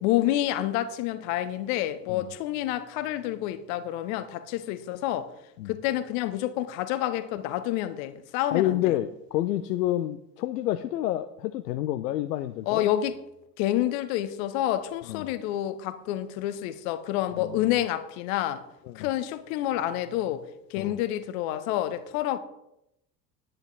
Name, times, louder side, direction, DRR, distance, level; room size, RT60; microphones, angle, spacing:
voice 1, 0.0-5.3 5.7-8.9 12.7-13.2 13.6-18.6 19.0-20.4 20.7-22.4, left 13 dB, 55° left, 1.0 m, -28 dB
voice 2, 8.5-12.9 15.1-15.3 17.4-17.8 18.9-19.1 20.8-21.0, left 14 dB, 70° left, 0.6 m, -29 dB
10.0 x 9.8 x 4.0 m
figure-of-eight pair, 65°, 49 cm